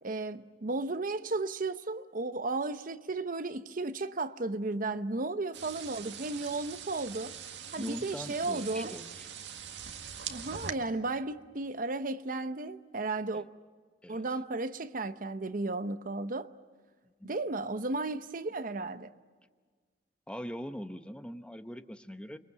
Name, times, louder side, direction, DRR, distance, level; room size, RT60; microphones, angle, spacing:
voice 1, 0.0-7.3 7.7-9.0 10.3-13.4 14.1-16.5 17.2-19.1, right 3 dB, 50° right, 0.9 m, -34 dB
sound 1, 5.5-10.7, right 7 dB, 85° right, 1.9 m, -43 dB
voice 2, 7.8-9.3 13.3-13.5 14.0-14.4 17.2-17.3 20.3-22.4, equal, 5° left, 0.9 m, -42 dB
30.0 x 22.0 x 8.1 m
head